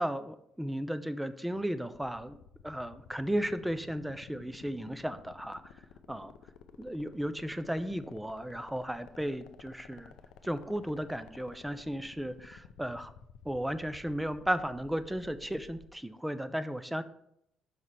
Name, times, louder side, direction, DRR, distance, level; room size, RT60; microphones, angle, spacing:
voice 1, 0.0-2.4 2.6-5.6 6.1-6.3 6.8-10.1 10.4-13.1 13.5-17.0, equal, 5° right, 13 dB, 0.4 m, -35 dB
sound 1, 1.9-15.9, left 8 dB, 85° left, 0.4 m, -53 dB
5.7 x 5.4 x 3.2 m, 0.76 s
cardioid pair, 115°, 0 cm